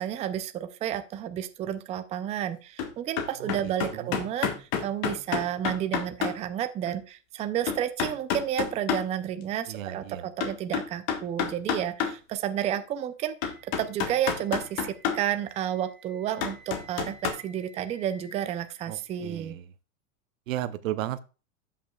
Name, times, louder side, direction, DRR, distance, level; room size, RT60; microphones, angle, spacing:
voice 1, 0.0-19.6, right 10 dB, 15° right, 10 dB, 0.4 m, -31 dB
sound 1, 2.8-2.9 3.2-6.3 6.9-7.0 7.7-9.0 10.4-12.1 12.7-12.8 13.4-15.2 16.4-17.3, left 8 dB, 50° left, 1.5 m, -28 dB
voice 2, 3.4-4.2 9.7-10.2 18.9-19.0 19.2-19.6 20.5-21.2, right 13 dB, 80° right, 14 dB, 0.8 m, -34 dB
Wind instrument woodwind instrument, 13.4-19.4, right 1 dB, 15° left, 5.1 m, -55 dB
15.5 x 5.6 x 2.3 m, 0.33 s
hypercardioid pair, 130°, 40 cm